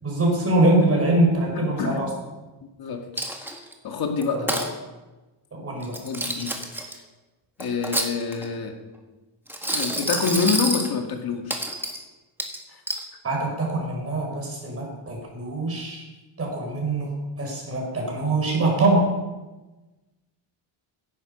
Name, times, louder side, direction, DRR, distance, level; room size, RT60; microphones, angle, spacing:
voice 1, 0.0-2.1 4.5-4.6 5.5-6.0 13.2-16.0 16.4-17.1 17.4-19.1, right 2 dB, 30° right, -1 dB, 4.9 m, -23 dB
voice 2, 1.5-2.0 2.6-3.1 3.4-4.5 6.0-6.5 6.8-6.9 7.6-8.8 9.7-11.6 12.7-12.8, left 5 dB, 45° left, 4 dB, 2.1 m, -27 dB
Coin (dropping), 3.2-3.7 4.2-4.7 5.8-6.9 7.6-8.5 9.5-10.9 11.5-12.0 12.4-13.0, right 1 dB, 5° right, 1.6 m, -28 dB
16.0 x 11.0 x 5.4 m, 1.1 s
cardioid pair, 160°, 49 cm